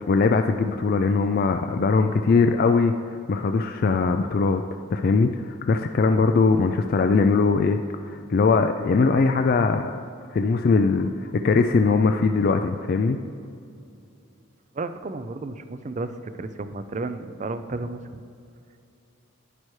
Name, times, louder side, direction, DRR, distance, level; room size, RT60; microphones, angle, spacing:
voice 1, 0.0-2.9 3.3-4.6 4.9-9.9 10.3-13.2, left 4 dB, 45° left, 6 dB, 0.3 m, -21 dB
voice 2, 14.7-18.2, right 3 dB, 35° right, 11 dB, 0.4 m, -33 dB
11.0 x 9.9 x 3.2 m, 2.5 s
head